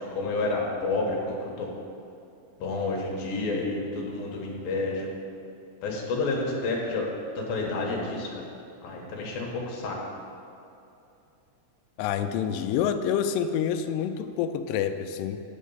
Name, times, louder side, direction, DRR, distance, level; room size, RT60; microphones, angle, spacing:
voice 1, 0.2-1.7 2.6-5.1 5.8-7.1 7.4-8.4 8.8-10.0, left 3 dB, 70° left, -1 dB, 2.7 m, -29 dB
voice 2, 12.0-15.4, left 8 dB, 85° left, 8 dB, 2.6 m, -27 dB
9.5 x 7.3 x 5.4 m, 2.7 s
omnidirectional pair, 4.8 m